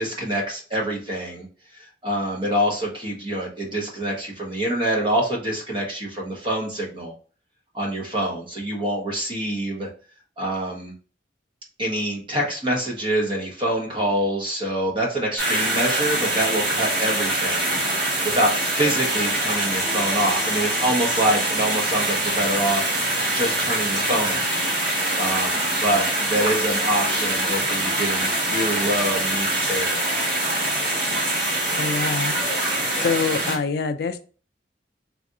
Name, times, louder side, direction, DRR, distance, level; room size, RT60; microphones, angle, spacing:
voice 1, 0.0-1.5 2.0-7.1 7.7-9.9 10.4-10.9 11.8-17.8 18.2-24.5 25.2-30.0, right 1 dB, 25° right, -1 dB, 0.9 m, -25 dB
sound 1, 15.4-33.6, right 1 dB, 50° right, 1.6 m, -24 dB
voice 2, 31.8-32.4 32.9-34.2, left 5 dB, 55° left, 9 dB, 0.3 m, -25 dB
3.3 x 2.5 x 2.7 m, 0.39 s
head